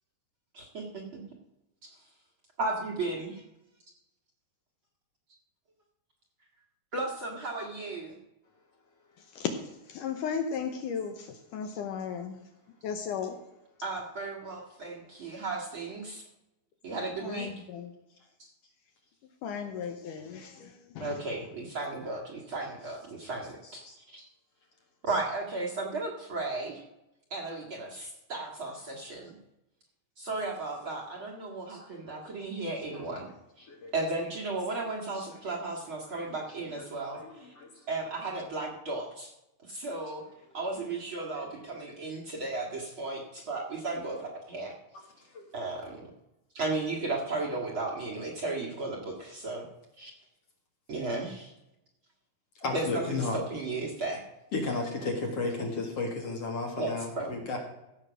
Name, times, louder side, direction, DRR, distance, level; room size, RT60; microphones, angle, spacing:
voice 1, 0.5-1.2 2.6-3.4 6.9-8.2 13.8-16.2 16.8-17.5 21.0-24.2 25.0-26.8 27.3-29.4 30.2-33.3 33.6-33.7 33.9-37.5 37.9-39.3 39.6-40.2 40.5-44.7 45.5-46.0 46.5-49.7 50.0-50.1 50.9-51.5 52.7-54.2 56.8-56.9 57.2-57.3, right 3 dB, 45° right, -2 dB, 2.1 m, -35 dB
voice 2, 9.2-12.4 12.8-13.4 17.2-17.9 19.4-21.3, left 6 dB, 70° left, 5 dB, 2.2 m, -35 dB
voice 3, 37.1-37.7 41.4-41.5 45.3-45.5 52.6-53.4 54.5-57.6, left 3 dB, 50° left, 1 dB, 2.3 m, -33 dB
15.5 x 6.6 x 6.2 m, 0.91 s
omnidirectional pair, 4.3 m